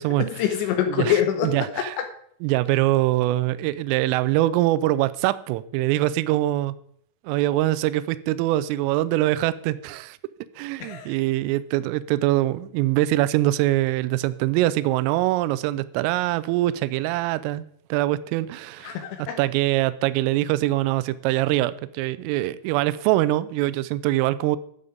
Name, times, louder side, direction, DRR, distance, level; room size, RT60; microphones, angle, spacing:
voice 1, 0.2-2.1 10.8-11.2 18.8-19.4, left 10 dB, 75° left, 2.8 m, -25 dB
voice 2, 2.4-6.8 7.2-10.2 10.6-17.6 17.9-19.0 19.4-24.6, right 16 dB, 85° right, 3.1 m, -23 dB
12.5 x 7.1 x 5.1 m
omnidirectional pair, 5.9 m